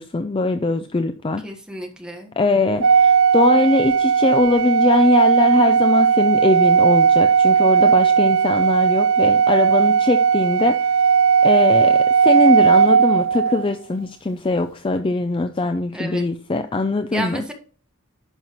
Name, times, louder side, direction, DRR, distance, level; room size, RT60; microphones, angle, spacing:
voice 1, 0.0-1.5 2.4-10.9 11.4-17.4, left 3 dB, 25° left, 0.3 m, -21 dB
voice 2, 1.4-2.4 15.9-16.2 17.1-17.5, right 1 dB, 5° right, 1.4 m, -31 dB
Organ, 2.8-13.7, right 7 dB, 55° right, 0.5 m, -16 dB
10.5 x 5.6 x 3.0 m
head